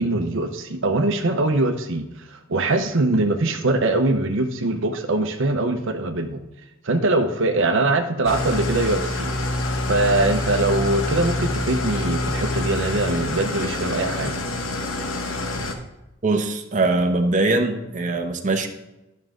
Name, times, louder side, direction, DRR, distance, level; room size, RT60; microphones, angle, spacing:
voice 1, 0.0-6.4 6.8-9.3 9.9-14.3, right 2 dB, 70° right, 6 dB, 0.8 m, -22 dB
Engine starting / Idling, 8.2-15.7, left 1 dB, 70° left, 1.1 m, -26 dB
voice 2, 16.2-18.7, right 2 dB, 40° right, 4 dB, 0.8 m, -22 dB
11.0 x 6.4 x 3.7 m, 0.97 s
head